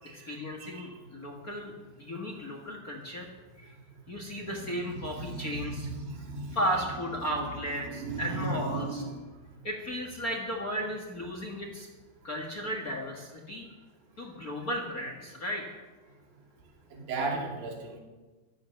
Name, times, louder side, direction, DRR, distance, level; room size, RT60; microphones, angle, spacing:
voice 1, 0.1-1.7 2.0-3.3 3.6-3.7 4.1-5.9 6.5-9.0 9.6-11.9 12.2-13.6 14.2-15.8, equal, 40° left, 2 dB, 1.3 m, -35 dB
voice 2, 4.9-6.8 7.3-7.5 7.8-9.1 17.1-18.0, right 3 dB, 70° right, 0 dB, 4.3 m, -35 dB
15.5 x 13.0 x 6.5 m, 1.3 s
omnidirectional pair, 4.2 m